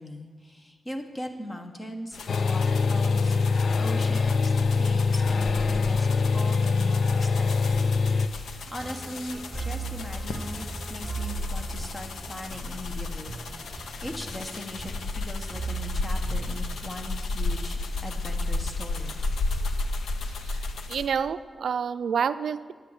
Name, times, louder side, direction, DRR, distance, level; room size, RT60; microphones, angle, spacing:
voice 1, 0.0-2.2 2.5-7.9 8.2-19.2, left 1 dB, 25° left, 5 dB, 1.4 m, -40 dB
sound 1, 2.1-21.1, left 2 dB, 90° left, 0.9 m, -34 dB
sound 2, 2.3-8.3, left 4 dB, 65° left, 0.5 m, -23 dB
sound 3, 8.7-16.6, right 3 dB, 25° right, 1.3 m, -38 dB
voice 2, 20.9-22.7, right 7 dB, 80° right, 13 dB, 0.4 m, -28 dB
10.5 x 8.2 x 8.2 m, 1.5 s
wide cardioid pair, 110°, 0 cm